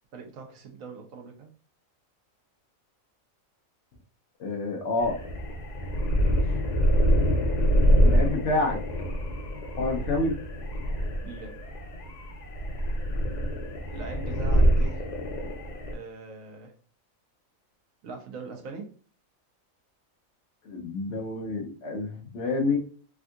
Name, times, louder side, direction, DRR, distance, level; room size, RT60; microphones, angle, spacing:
voice 1, 0.1-1.5 6.3-6.6 11.2-11.5 13.9-15.0 15.9-16.7 18.0-18.8, right 4 dB, 75° right, 3 dB, 1.1 m, -41 dB
voice 2, 4.4-5.2 8.0-8.8 9.8-10.3 20.6-22.8, left 3 dB, 65° left, 1 dB, 1.0 m, -28 dB
sound 1, 5.0-15.9, equal, 90° left, 0.3 m, -25 dB
3.5 x 2.6 x 2.3 m, 0.41 s
omnidirectional pair, 1.4 m